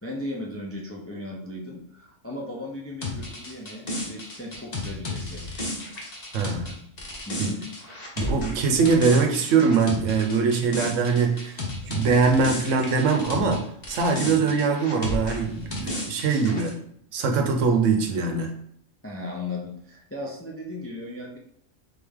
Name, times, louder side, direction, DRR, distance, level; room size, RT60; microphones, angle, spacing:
voice 1, 0.0-5.5 7.3-7.6 14.2-14.5 19.0-21.4, left 1 dB, 20° left, -1 dB, 0.3 m, -36 dB
sound 1, 3.0-13.6 13.8-16.7, left 2 dB, 35° left, 1.0 m, -33 dB
voice 2, 6.3-6.8 7.4-7.5 8.2-11.6 11.9-16.7 17.1-18.5, right 5 dB, 80° right, 4 dB, 1.1 m, -22 dB
3.9 x 3.4 x 3.5 m, 0.70 s
omnidirectional pair, 1.3 m